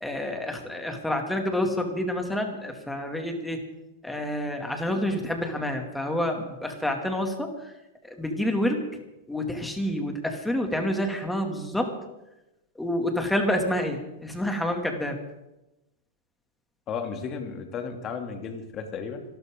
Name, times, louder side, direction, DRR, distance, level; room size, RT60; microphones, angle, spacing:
voice 1, 0.0-3.6 4.0-7.7 8.0-8.8 9.3-11.9 12.8-15.2, left 1 dB, 5° left, 3 dB, 2.5 m, -28 dB
voice 2, 16.9-19.2, left 6 dB, 30° left, 4 dB, 2.7 m, -34 dB
26.0 x 12.5 x 3.9 m, 0.94 s
hypercardioid pair, 130°, 0 cm